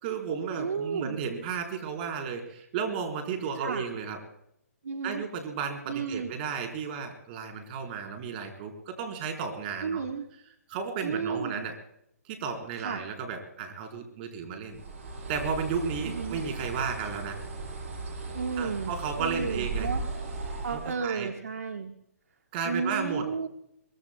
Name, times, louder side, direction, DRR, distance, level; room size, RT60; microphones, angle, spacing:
voice 1, 0.0-4.2 5.0-10.0 10.7-11.7 12.3-14.8 15.3-17.4 18.6-19.9 20.7-21.3 22.5-23.3, right 6 dB, 40° right, 4 dB, 4.3 m, -33 dB
voice 2, 0.6-1.2 3.6-3.8 4.8-5.2 5.9-6.3 9.8-10.2 11.0-11.6 12.8-13.0 16.0-16.4 18.3-20.0 20.6-21.9 22.6-23.5, right 5 dB, 70° right, 5 dB, 1.4 m, -33 dB
Bird, 14.7-21.0, right 3 dB, 55° right, 6.2 m, -36 dB
23.5 x 23.0 x 2.3 m, 0.73 s
hypercardioid pair, 140°, 8 cm